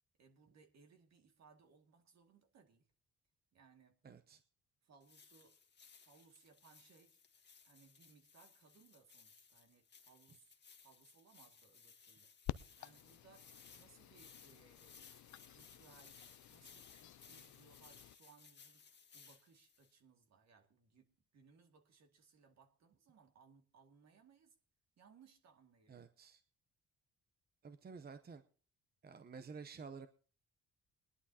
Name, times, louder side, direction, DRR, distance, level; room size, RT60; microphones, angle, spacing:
voice 1, 0.2-2.9 3.5-4.0 4.8-5.6 6.0-7.2 7.6-10.6 10.8-12.3 12.8-15.0 15.5-16.2 16.5-18.8 19.1-24.6 25.0-26.1, right 5 dB, 60° right, 5 dB, 2.1 m, -67 dB
voice 2, 4.0-4.4 25.9-26.4 27.6-28.4 29.0-30.1, right 5 dB, 30° right, 9 dB, 0.8 m, -51 dB
sound 1, 5.0-19.9, left 6 dB, 35° left, 1.6 m, -62 dB
sound 2, 12.5-18.2, left 14 dB, 70° left, 0.5 m, -51 dB
21.5 x 11.0 x 2.8 m, 0.40 s
cardioid pair, 90°, 30 cm